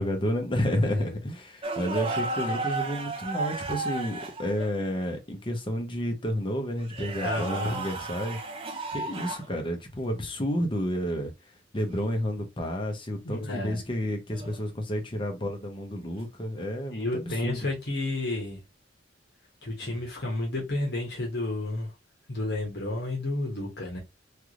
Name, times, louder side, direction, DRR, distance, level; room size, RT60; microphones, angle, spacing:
voice 1, 0.0-8.4 8.9-11.3 11.7-17.6, equal, 25° left, 0.8 m, -30 dB
sound 1, 1.6-4.7 6.8-9.5 11.9-12.1 14.3-14.7 17.6-17.8 19.8-20.1, right 3 dB, 30° right, 0.5 m, -33 dB
voice 2, 7.2-7.8 13.2-13.8 16.9-18.6 19.6-21.9 22.3-24.0, left 2 dB, 60° left, 1.1 m, -31 dB
3.3 x 2.4 x 2.9 m
head